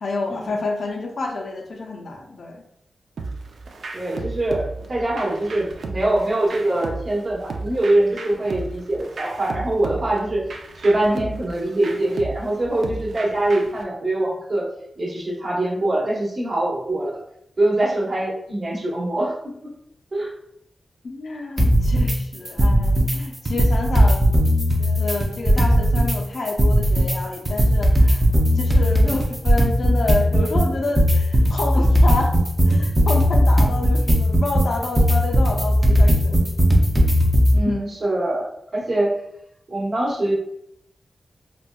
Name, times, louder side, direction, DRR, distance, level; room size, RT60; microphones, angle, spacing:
voice 1, 0.0-2.6 21.0-24.3 24.8-28.3 28.5-32.4 32.6-36.5 37.5-37.9, left 3 dB, 70° left, 1 dB, 0.4 m, -28 dB
sound 1, 3.2-13.8, right 3 dB, 85° right, 0.4 m, -35 dB
voice 2, 3.9-10.4 10.8-14.7 15.0-17.2 17.6-19.7 20.1-20.3 29.0-29.2 37.5-39.2 39.7-40.4, right 1 dB, 45° right, -4 dB, 1.0 m, -23 dB
sound 2, 21.6-22.2 22.5-23.2 23.5-26.2 26.5-37.6, equal, 15° right, 0.4 m, -17 dB
4.1 x 2.1 x 2.3 m, 0.75 s
wide cardioid pair, 145°, 0 cm